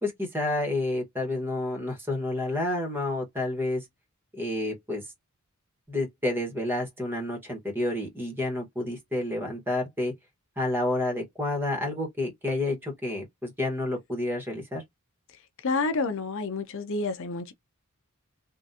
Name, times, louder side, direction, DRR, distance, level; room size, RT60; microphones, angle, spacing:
voice 1, 0.0-3.8 4.3-5.0 5.9-10.1 10.6-14.8, left 2 dB, 10° right, 1.3 m, -29 dB
voice 2, 15.6-17.5, left 3 dB, 65° left, 0.6 m, -29 dB
3.6 x 2.5 x 2.7 m
head